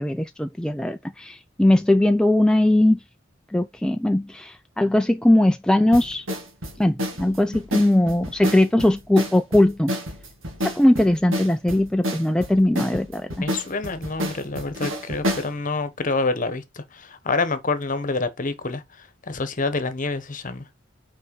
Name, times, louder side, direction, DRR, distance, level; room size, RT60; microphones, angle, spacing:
voice 1, 0.0-3.0 3.5-6.2 6.8-9.9 10.6-13.3, left 1 dB, 5° left, 0.3 m, -20 dB
sound 1, 5.9-15.5, equal, 85° right, 2.3 m, -30 dB
voice 2, 13.4-20.7, left 3 dB, 40° left, 1.1 m, -27 dB
5.6 x 4.5 x 5.4 m
head